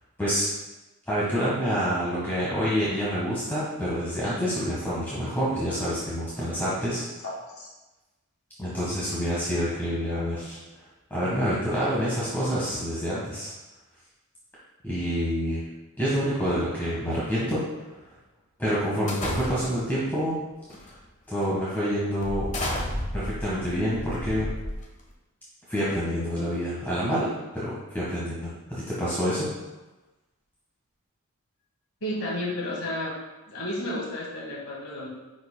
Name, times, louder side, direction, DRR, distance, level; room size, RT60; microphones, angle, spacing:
voice 1, 1.1-7.0 8.6-10.6 11.1-13.5 14.8-15.6 16.0-17.6 18.6-20.4 20.8-21.0 21.3-22.5 23.1-24.5 25.7-29.5, equal, 10° left, -9 dB, 1.4 m, -27 dB
voice 2, 7.2-7.7 32.0-33.1 33.5-35.1, left 1 dB, 70° left, -4 dB, 2.1 m, -32 dB
sound 1, 19.1-19.9 20.7-21.0 21.4-21.5 22.2-25.1, left 1 dB, 35° left, 1.1 m, -32 dB
10.5 x 4.9 x 2.2 m, 1.1 s
head